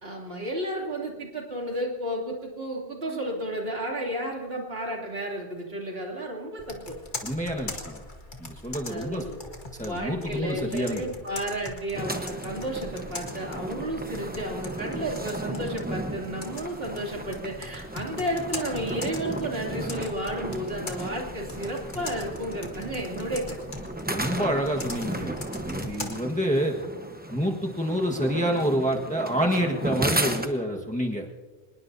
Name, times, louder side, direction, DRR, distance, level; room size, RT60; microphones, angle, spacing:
voice 1, 0.0-7.0 8.9-9.5 9.8-23.6, right 1 dB, 70° right, -1 dB, 3.2 m, -32 dB
Computer keyboard, 6.6-26.1, left 2 dB, 50° left, 2.1 m, -41 dB
voice 2, 7.2-8.0 8.4-9.3 9.8-11.0 24.1-26.7 27.3-31.3, equal, 5° left, 0 dB, 1.4 m, -28 dB
sound 1, 11.9-30.5, right 1 dB, 10° right, 1.0 m, -35 dB
25.5 x 20.5 x 2.7 m, 1.3 s
omnidirectional pair, 1.0 m